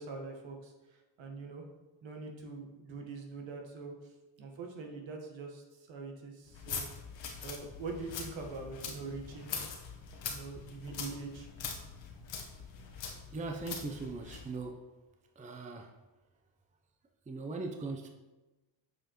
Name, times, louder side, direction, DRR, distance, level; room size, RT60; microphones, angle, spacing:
voice 1, 0.0-1.6 2.0-4.1 4.4-6.9 7.4-9.6 10.3-11.5, right 3 dB, 65° right, 2 dB, 1.4 m, -43 dB
sound 1, 6.5-14.5, left 6 dB, 60° left, 1.3 m, -43 dB
voice 2, 13.3-14.8 15.4-15.9 17.3-18.1, right 3 dB, 15° right, 4 dB, 0.6 m, -39 dB
7.6 x 4.6 x 3.0 m, 1.1 s
cardioid pair, 75°, 50 cm